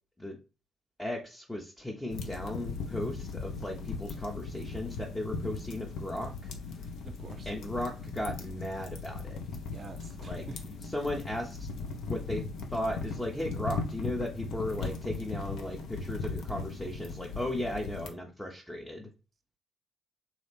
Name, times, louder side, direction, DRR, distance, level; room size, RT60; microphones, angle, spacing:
voice 1, 1.0-6.3 7.4-9.4 10.2-10.5 10.8-11.7 12.0-12.4 12.7-19.1, left 1 dB, 5° left, 0 dB, 0.6 m, -36 dB
sound 1, 2.1-18.1, left 4 dB, 60° left, 0.5 m, -38 dB
voice 2, 7.0-7.5 9.7-10.6, right 4 dB, 35° right, 7 dB, 0.3 m, -46 dB
3.4 x 2.4 x 3.3 m, 0.31 s
figure-of-eight pair, 40°, 0 cm